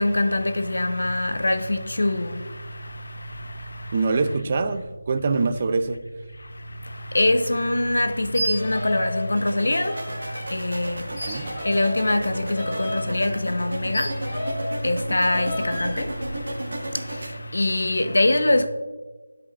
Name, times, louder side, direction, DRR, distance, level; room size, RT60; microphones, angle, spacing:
voice 1, 0.0-2.4 7.0-10.0 10.5-14.1 14.8-16.1 17.0-18.7, left 1 dB, 75° left, 0.7 m, -23 dB
voice 2, 3.9-6.0 11.1-11.5, right 4 dB, 30° right, 0.4 m, -24 dB
sound 1, 8.3-9.2 9.4-10.5 11.1-14.7 15.2-16.0, equal, 30° left, 2.1 m, -32 dB
sound 2, 9.3-17.3, right 1 dB, 65° right, 1.2 m, -35 dB
10.5 x 5.2 x 2.4 m
figure-of-eight pair, 170°, 0 cm